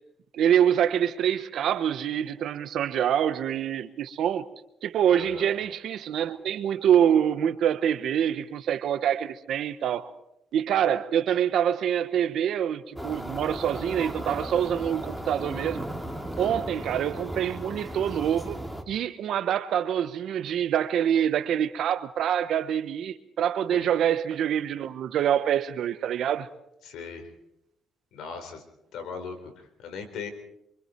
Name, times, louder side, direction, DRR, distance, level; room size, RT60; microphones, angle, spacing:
voice 1, 0.3-4.4 4.8-10.1 10.5-15.8 16.4-18.6 18.9-26.5, right 9 dB, 75° right, 1.1 m, -25 dB
voice 2, 5.2-5.5 16.4-16.7 23.7-23.9 26.8-27.3 28.1-28.6 28.9-30.3, left 5 dB, 80° left, 4.3 m, -39 dB
sound 1, 13.0-18.8, equal, 5° left, 3.0 m, -36 dB
26.5 x 24.5 x 4.6 m
cardioid pair, 90°, 0 cm